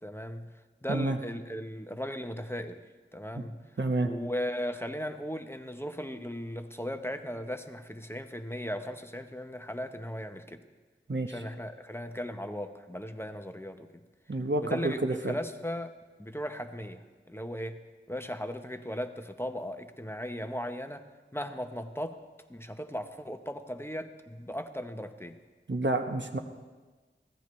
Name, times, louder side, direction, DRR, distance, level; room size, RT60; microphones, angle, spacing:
voice 1, 0.0-0.5 0.8-2.9 3.1-3.6 4.0-10.6 11.3-14.0 14.6-15.9 16.2-17.8 18.1-21.0 21.3-25.4, equal, 10° left, 7 dB, 0.9 m, -37 dB
voice 2, 3.8-4.1 11.1-11.3 14.3-15.3 25.7-26.4, right 2 dB, 60° right, 6 dB, 1.0 m, -29 dB
23.5 x 16.5 x 3.2 m, 1.3 s
wide cardioid pair, 40°, 21 cm